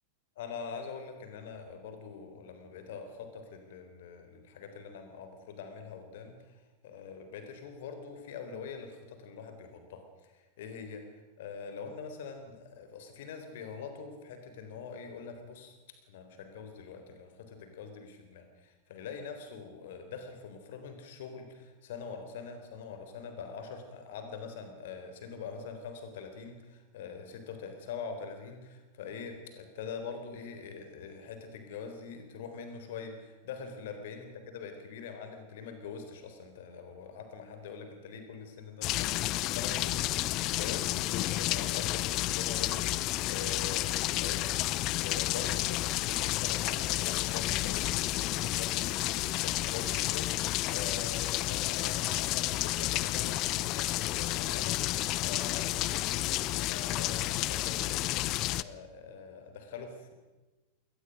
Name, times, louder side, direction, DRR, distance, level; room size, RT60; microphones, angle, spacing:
voice 1, 0.4-6.6 6.8-11.0 11.4-15.8 16.1-60.1, left 5 dB, 55° left, 7 dB, 3.8 m, -44 dB
sound 1, 38.8-58.6, left 17 dB, 40° left, 0.6 m, -31 dB
22.0 x 18.5 x 6.5 m, 1.2 s
figure-of-eight pair, 90°, 0 cm